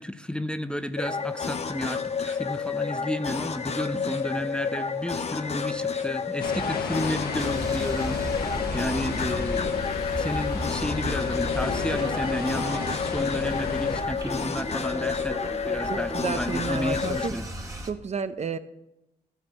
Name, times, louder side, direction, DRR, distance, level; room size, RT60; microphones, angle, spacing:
voice 1, 0.0-15.4 15.7-17.4, left 1 dB, 5° left, 10 dB, 0.5 m, -32 dB
sound 1, 1.0-17.3, left 5 dB, 45° left, 0.7 m, -30 dB
sound 2, 6.4-14.0, left 5 dB, 85° left, 1.0 m, -34 dB
sound 3, 7.4-17.9, right 1 dB, 20° right, 1.6 m, -36 dB
voice 2, 8.8-9.2 15.8-17.3 17.8-18.6, right 5 dB, 45° right, 11 dB, 0.6 m, -32 dB
12.5 x 4.4 x 6.9 m, 0.92 s
cardioid pair, 65°, 16 cm